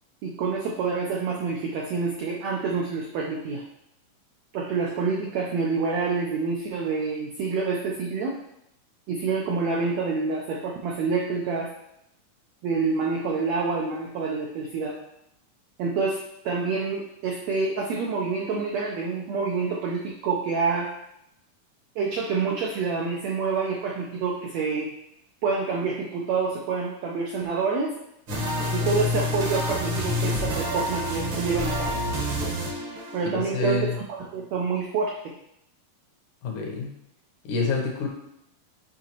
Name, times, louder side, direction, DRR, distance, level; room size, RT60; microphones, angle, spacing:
voice 1, 0.2-3.6 4.5-8.4 9.1-11.7 12.6-15.0 15.8-20.9 21.9-24.9 25.4-27.9 28.7-31.9 33.1-35.1, right 4 dB, 80° right, -1 dB, 1.5 m, -27 dB
sound 1, 28.3-33.5, left 1 dB, 55° right, 1.3 m, -28 dB
voice 2, 33.3-34.0 36.4-36.9 37.5-38.1, left 3 dB, 70° left, 1 dB, 2.3 m, -27 dB
7.6 x 5.0 x 2.9 m, 0.79 s
omnidirectional pair, 4.0 m